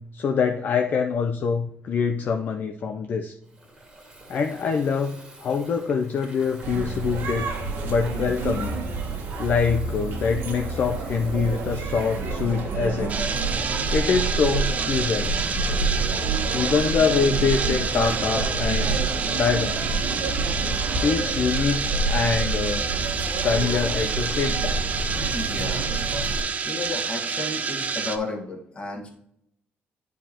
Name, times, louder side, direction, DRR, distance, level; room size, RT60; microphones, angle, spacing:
voice 1, 0.0-3.3 4.3-7.5 7.8-8.7 9.4-13.1 13.9-15.4 16.5-19.0 19.3-19.8 21.0-22.9 23.4-24.8, left 5 dB, 50° left, 4 dB, 0.5 m, -25 dB
Water tap faucet / Fill (with liquid), 3.4-13.7, right 2 dB, 20° right, 1.8 m, -47 dB
sound 1, 6.6-26.4, right 3 dB, 70° right, 1.5 m, -28 dB
sound 2, 13.1-28.2, right 5 dB, 40° right, 0.5 m, -28 dB
voice 2, 25.1-25.9 26.6-29.1, left 2 dB, 30° left, 2 dB, 1.5 m, -33 dB
10.0 x 4.6 x 2.9 m, 0.76 s
cardioid pair, 145°, 4 cm